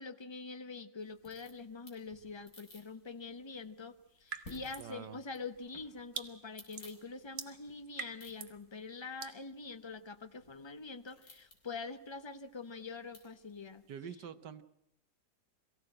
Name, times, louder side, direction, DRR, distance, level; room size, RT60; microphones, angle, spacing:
voice 1, 0.0-13.8, left 4 dB, 25° left, 10 dB, 0.6 m, -45 dB
sound 1, 1.0-13.9, left 1 dB, 50° left, 4.4 m, -60 dB
sound 2, 4.3-5.0 5.3-8.6 9.2-9.4, right 6 dB, 40° right, 1.2 m, -45 dB
voice 2, 4.8-5.2 13.9-14.6, right 8 dB, 70° right, 12 dB, 1.6 m, -46 dB
23.0 x 16.0 x 7.7 m, 0.78 s
omnidirectional pair, 2.0 m